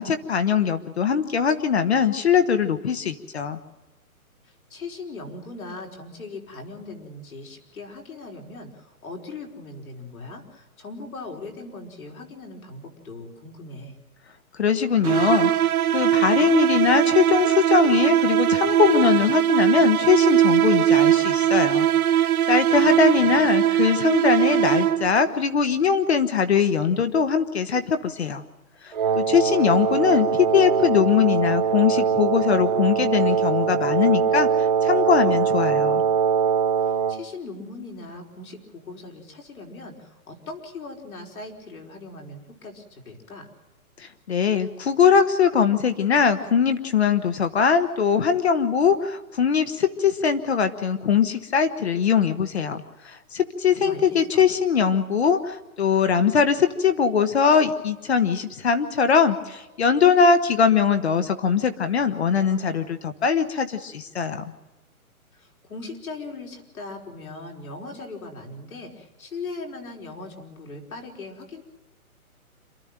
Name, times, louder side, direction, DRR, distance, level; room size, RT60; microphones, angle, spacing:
voice 1, 0.0-3.6 14.6-28.4 28.8-36.0 44.0-64.4, left 6 dB, 45° left, 10 dB, 1.2 m, -21 dB
voice 2, 4.4-14.0 22.7-23.5 36.8-43.5 53.6-54.4 65.3-71.6, left 3 dB, 70° left, 1 dB, 4.9 m, -39 dB
sound 1, 15.0-25.3, right 11 dB, 75° right, 1.0 m, -20 dB
Wind instrument woodwind instrument, 28.9-37.2, right 7 dB, 30° right, 1.0 m, -22 dB
27.5 x 12.5 x 8.9 m, 1.1 s
hypercardioid pair, 170°, 44 cm